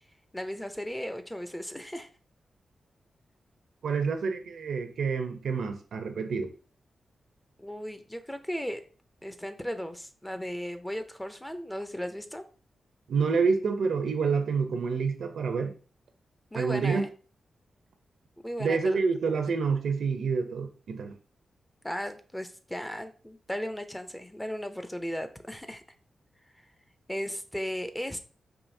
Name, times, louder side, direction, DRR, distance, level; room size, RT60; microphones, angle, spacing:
voice 1, 0.3-2.1 7.6-8.8 9.2-12.4 16.5-17.1 18.4-19.0 19.3-19.4 21.8-25.8 26.6-26.7 27.1-28.2, equal, 10° left, 0.5 m, -36 dB
voice 2, 3.8-6.5 13.1-15.7 16.5-17.0 18.6-21.2, right 5 dB, 80° right, 0.6 m, -28 dB
4.8 x 2.7 x 2.6 m
cardioid pair, 80°, 0 cm